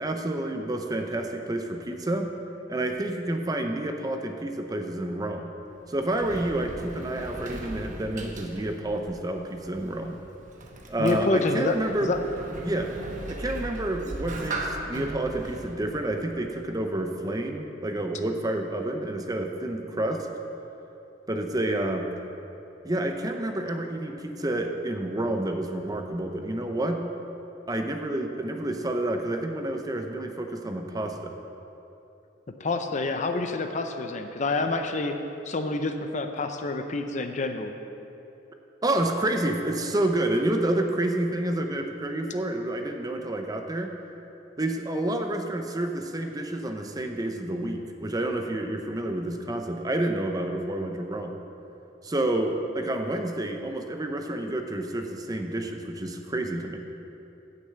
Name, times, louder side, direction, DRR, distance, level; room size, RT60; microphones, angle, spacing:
voice 1, 0.0-2.3 2.7-5.5 5.9-10.2 10.9-12.1 12.6-12.9 13.3-20.3 21.3-22.1 22.8-27.0 27.7-31.4 38.8-43.9 44.6-51.4 52.0-56.8, right 1 dB, 20° right, 4 dB, 0.6 m, -29 dB
Sliding door, 5.6-17.0, right 1 dB, 45° right, 1.0 m, -39 dB
voice 2, 11.0-11.8 12.0-12.2 32.6-35.2 35.5-37.7, left 3 dB, 40° left, 6 dB, 0.6 m, -27 dB
8.9 x 6.7 x 7.8 m, 2.9 s
head